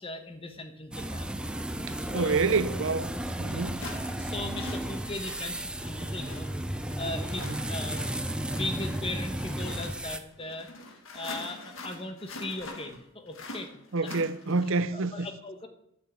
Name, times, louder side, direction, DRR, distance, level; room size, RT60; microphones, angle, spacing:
voice 1, 0.0-1.4 2.0-2.4 3.5-3.8 4.1-6.5 7.0-13.7 14.0-14.1 14.9-15.7, left 2 dB, 25° left, 1.1 m, -38 dB
sound 1, 0.9-10.2, right 1 dB, 5° right, 0.5 m, -34 dB
voice 2, 1.9-3.1 3.4-3.7 7.4-7.6 13.9-15.3, right 4 dB, 60° right, 0.7 m, -28 dB
sound 2, 2.9-3.0 3.8-14.8, left 2 dB, 60° left, 1.8 m, -45 dB
11.0 x 6.2 x 8.5 m
head